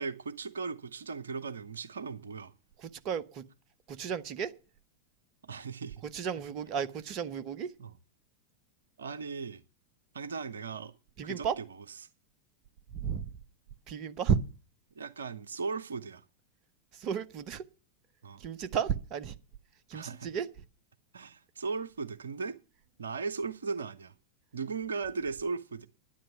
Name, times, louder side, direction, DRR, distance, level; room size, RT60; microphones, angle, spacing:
voice 1, 0.0-2.5 5.4-6.0 7.8-7.9 9.0-9.6 10.1-10.9 11.2-11.6 15.0-16.2 18.2-18.4 19.9-20.3 21.1-22.6 23.0-24.1 24.5-25.9, right 4 dB, 70° right, 0.8 m, -37 dB
voice 2, 2.8-3.4 3.9-4.5 6.0-7.7 11.2-11.6 13.0-13.3 13.9-14.4 16.9-17.6 18.4-19.3 19.9-20.5, right 7 dB, 40° right, 1.0 m, -33 dB
10.5 x 10.0 x 6.9 m
figure-of-eight pair, 90°, 0 cm